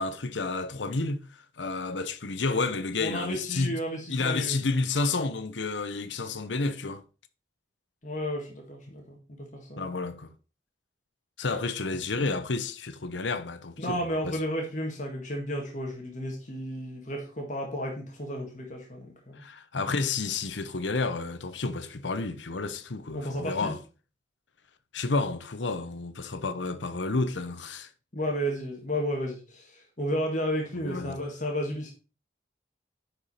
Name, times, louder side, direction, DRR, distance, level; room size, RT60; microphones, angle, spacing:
voice 1, 0.0-3.7 4.1-7.0 9.8-10.3 11.4-14.2 19.4-23.8 24.9-27.9 30.8-31.2, left 3 dB, 85° left, 0.9 m, -30 dB
voice 2, 3.0-4.6 8.0-9.9 13.8-19.4 23.1-23.7 28.1-31.9, equal, 45° left, 1.7 m, -33 dB
10.0 x 4.7 x 4.2 m
head